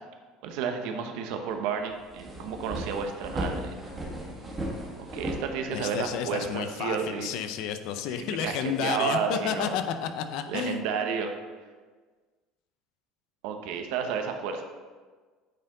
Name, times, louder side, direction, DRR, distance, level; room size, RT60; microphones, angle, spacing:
voice 1, 0.4-3.7 5.0-7.3 8.2-9.8 10.5-11.3 13.4-14.6, right 6 dB, 75° right, 5 dB, 0.8 m, -31 dB
sound 1, 1.5-1.6 1.9-6.1, right 1 dB, 20° right, 1.6 m, -36 dB
voice 2, 5.7-10.8, left 8 dB, 65° left, 8 dB, 0.6 m, -31 dB
9.0 x 4.4 x 3.8 m, 1.4 s
cardioid pair, 150°, 0 cm